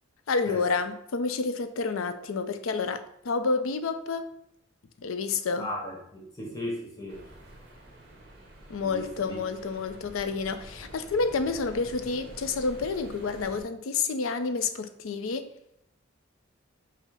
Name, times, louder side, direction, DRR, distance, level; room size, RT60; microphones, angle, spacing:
voice 1, 0.3-4.3 5.0-5.7 8.7-15.5, left 4 dB, 80° left, 0.4 m, -29 dB
voice 2, 5.6-7.3 8.8-9.4, left 1 dB, 15° left, 1.0 m, -37 dB
sound 1, 7.1-13.6, right 1 dB, 50° right, 1.1 m, -48 dB
5.4 x 2.0 x 4.8 m
head